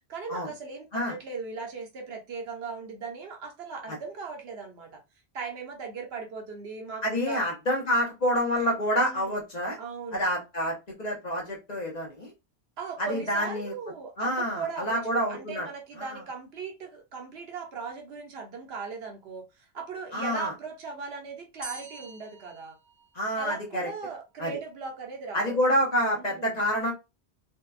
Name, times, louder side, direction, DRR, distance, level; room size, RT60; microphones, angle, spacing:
voice 1, 0.1-5.0 5.3-7.5 9.0-9.3 9.8-10.2 12.8-22.8 23.4-25.6 26.2-26.6, right 4 dB, 70° right, 0.9 m, -38 dB
voice 2, 7.0-9.8 10.1-12.3 13.0-13.7 14.2-15.7 16.0-16.2 20.1-20.5 23.1-23.9 24.4-24.5 25.3-26.9, equal, 45° left, 0.7 m, -28 dB
sound 1, 21.6-23.5, right 2 dB, 20° left, 1.1 m, -44 dB
2.6 x 2.1 x 2.3 m
omnidirectional pair, 1.1 m